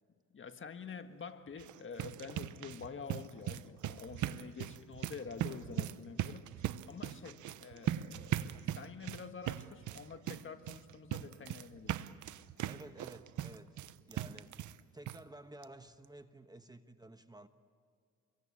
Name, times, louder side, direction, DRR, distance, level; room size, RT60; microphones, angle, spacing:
voice 1, 0.3-6.5 6.9-12.2, left 5 dB, 40° left, 8 dB, 1.6 m, -48 dB
sound 1, 1.5-14.8 15.1-15.2 15.6-15.7 16.0-16.1, right 12 dB, 75° right, 0.9 m, -40 dB
voice 2, 12.7-13.8 14.1-14.6 14.9-17.5, right 1 dB, 15° right, 9 dB, 1.2 m, -53 dB
27.5 x 23.0 x 8.6 m, 2.3 s
cardioid pair, 90°, 30 cm